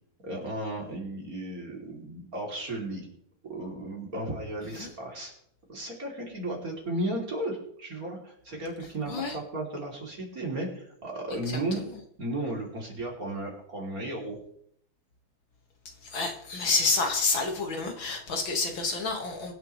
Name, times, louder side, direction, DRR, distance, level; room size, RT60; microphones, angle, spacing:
voice 1, 0.2-3.1 3.5-5.3 5.7-11.8 12.2-14.4, right 1 dB, 40° right, -1 dB, 3.6 m, -34 dB
voice 2, 9.1-9.4 11.8-11.9 16.0-19.5, left 3 dB, 65° left, 3 dB, 2.5 m, -29 dB
23.5 x 10.5 x 3.2 m, 0.69 s
omnidirectional pair, 2.4 m